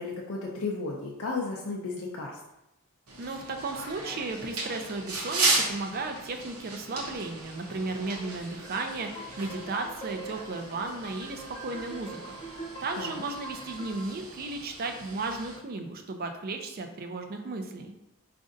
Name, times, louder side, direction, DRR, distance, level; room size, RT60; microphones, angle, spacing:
voice 1, 0.0-2.4 13.0-13.2, left 3 dB, 65° left, -2 dB, 0.5 m, -34 dB
sound 1, 3.1-15.6, right 3 dB, 75° right, 0.8 m, -36 dB
voice 2, 3.2-12.2 12.5-17.9, right 3 dB, 40° right, 5 dB, 0.4 m, -35 dB
sound 2, 8.6-14.1, right 3 dB, 15° left, 0.7 m, -43 dB
5.0 x 2.5 x 2.5 m, 0.89 s
head